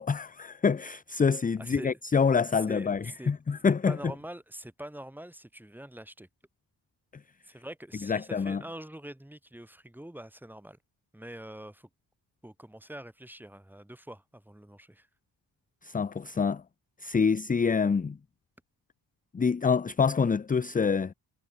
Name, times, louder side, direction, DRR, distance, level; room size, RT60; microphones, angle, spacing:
voice 1, 0.0-4.0 8.0-8.6 15.8-16.6 17.0-18.2 19.3-21.1, left 5 dB, 20° left, 0.5 m, -26 dB
voice 2, 1.6-2.0 2.7-3.3 3.9-6.3 7.5-10.8 11.1-11.9 12.4-15.1, right 1 dB, 5° right, 1.8 m, -44 dB
wide cardioid pair, 140°, 42 cm